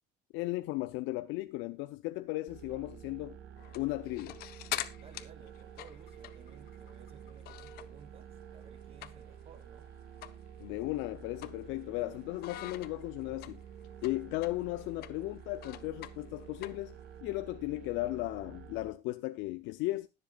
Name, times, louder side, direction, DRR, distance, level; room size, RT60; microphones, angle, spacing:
voice 1, 0.3-3.4 3.7-4.4 10.6-13.6 14.0-17.0 17.2-20.1, left 19 dB, 80° left, 0.6 m, -36 dB
sound 1, 2.5-18.9, right 9 dB, 60° right, 1.2 m, -50 dB
sound 2, 3.6-8.1 8.4-9.5 9.8-9.9 10.2-10.4 10.8-12.0 12.4-17.2, left 15 dB, 55° left, 0.8 m, -44 dB
voice 2, 4.9-9.9, right 6 dB, 30° right, 1.2 m, -56 dB
20.5 x 7.6 x 2.3 m
cardioid pair, 180°, 19 cm